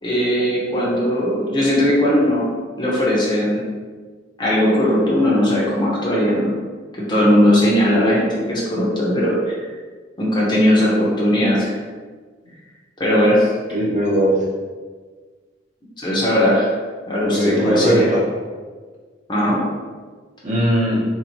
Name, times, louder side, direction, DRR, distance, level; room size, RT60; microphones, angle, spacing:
voice 1, 0.0-2.5 2.8-3.6 4.4-6.5 6.9-9.6 10.2-11.7 13.0-13.5 16.0-16.8 17.1-18.1 19.3-19.6, equal, 25° left, -5 dB, 0.8 m, -18 dB
voice 2, 13.7-14.4 17.2-18.2 20.4-21.0, right 1 dB, 40° right, -5 dB, 0.9 m, -19 dB
4.1 x 2.7 x 2.9 m, 1.5 s
head